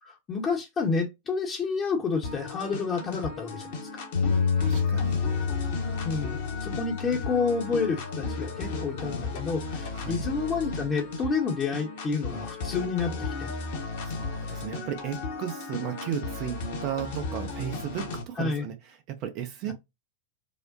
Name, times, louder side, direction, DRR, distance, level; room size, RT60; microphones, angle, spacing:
voice 1, 0.0-3.7 3.9-4.0 6.0-13.5 18.4-18.7 19.7-19.8, left 4 dB, 25° left, 0.8 m, -29 dB
sound 1, 2.2-18.2, left 3 dB, 55° left, 1.0 m, -35 dB
Bass guitar, 4.1-10.4, left 6 dB, 75° left, 0.3 m, -30 dB
voice 2, 4.6-5.2 9.9-10.2 14.0-19.7, right 10 dB, 40° right, 0.6 m, -35 dB
4.9 x 2.1 x 2.6 m
figure-of-eight pair, 90°, 0 cm